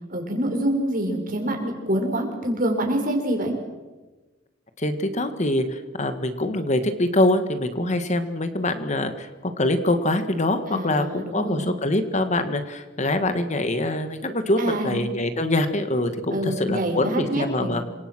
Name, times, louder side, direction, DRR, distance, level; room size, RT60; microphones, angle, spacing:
voice 1, 0.1-3.5 10.7-11.7 14.6-15.0 16.3-17.8, right 1 dB, 45° right, 2 dB, 6.0 m, -26 dB
voice 2, 4.8-17.8, left 1 dB, 40° left, 9 dB, 1.8 m, -24 dB
28.5 x 25.5 x 6.3 m, 1.2 s
head